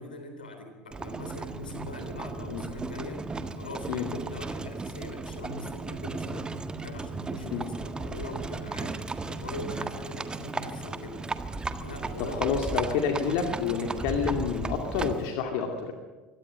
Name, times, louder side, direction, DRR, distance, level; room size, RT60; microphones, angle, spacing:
voice 1, 0.0-3.3 3.5-6.5 6.8-11.2 11.8-13.5, left 2 dB, 85° left, 6 dB, 3.5 m, -41 dB
Livestock farm animals working animals, 0.9-15.3, right 3 dB, 20° right, 1.6 m, -35 dB
voice 2, 12.2-15.9, left 6 dB, 60° left, 4 dB, 2.3 m, -29 dB
24.0 x 17.5 x 7.6 m, 1.3 s
figure-of-eight pair, 70°, 5 cm